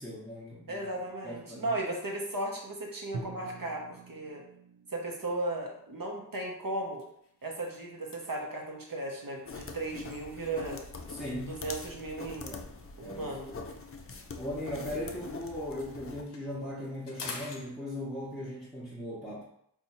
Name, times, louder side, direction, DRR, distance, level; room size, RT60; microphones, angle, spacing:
voice 1, 0.0-0.8 1.2-1.7 11.1-11.6 12.4-12.7 13.0-13.6 14.4-19.4, left 1 dB, ahead, -8 dB, 0.8 m, -39 dB
voice 2, 0.7-4.4 4.9-7.0 7.4-10.8 11.5-12.6 13.0-13.5, right 2 dB, 55° right, -1 dB, 0.8 m, -36 dB
Drum, 3.1-6.9, right 3 dB, 85° right, 0.5 m, -46 dB
sound 1, 5.7-5.9 6.4-6.5 6.9-10.8 11.7-15.2 15.5-18.4, left 4 dB, 80° left, 0.6 m, -50 dB
sound 2, 9.4-16.2, left 4 dB, 35° left, 0.4 m, -43 dB
2.7 x 2.3 x 4.1 m, 0.72 s
wide cardioid pair, 45°, 41 cm